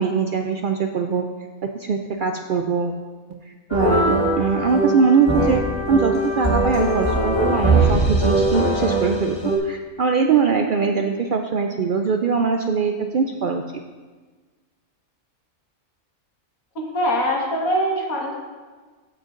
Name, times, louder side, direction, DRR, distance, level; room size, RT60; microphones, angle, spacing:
voice 1, 0.0-1.3 1.7-2.9 3.3-13.6, right 5 dB, 85° right, 4 dB, 0.4 m, -22 dB
sound 1, 3.7-9.6, right 1 dB, 20° left, 1.4 m, -21 dB
voice 2, 16.8-18.5, equal, 90° left, -1 dB, 2.0 m, -23 dB
15.5 x 6.5 x 2.5 m, 1.4 s
omnidirectional pair, 1.4 m